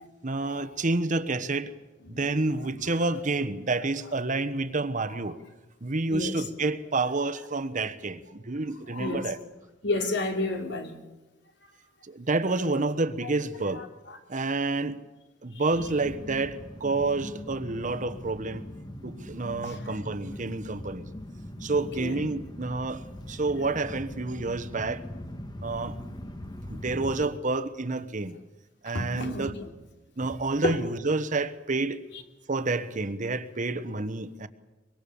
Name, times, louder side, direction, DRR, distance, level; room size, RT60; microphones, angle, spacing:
voice 1, 0.2-1.7 2.1-5.4 5.8-9.4 12.0-13.8 14.3-15.0 15.4-18.7 19.0-21.1 21.6-25.0 25.6-26.0 26.7-28.4 28.8-29.5 30.2-32.0 32.5-34.5, right 3 dB, 40° right, 1.1 m, -29 dB
voice 2, 2.5-2.9 5.1-5.2 6.1-6.4 8.9-9.3 9.8-10.9 12.6-12.7 13.7-14.2 15.5-15.6 19.6-19.9 21.7-22.3 28.9-29.7 30.6-30.8, left 2 dB, 65° left, 3.0 m, -32 dB
sound 1, 15.7-27.3, equal, 20° left, 1.3 m, -41 dB
24.0 x 22.5 x 7.1 m
head